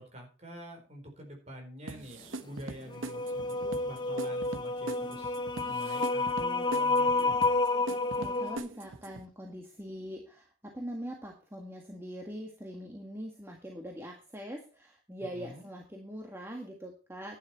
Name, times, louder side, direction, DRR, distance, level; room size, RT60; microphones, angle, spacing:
voice 1, 0.0-5.3 5.7-7.5 15.2-15.7, equal, 30° right, 3 dB, 4.3 m, -47 dB
sound 1, 1.9-9.3, right 2 dB, 70° right, 1.2 m, -42 dB
sound 2, 2.9-8.6, left 3 dB, 20° left, 0.8 m, -30 dB
voice 2, 7.9-17.4, equal, 10° right, 1 dB, 1.8 m, -42 dB
11.0 x 9.6 x 4.4 m, 0.36 s
head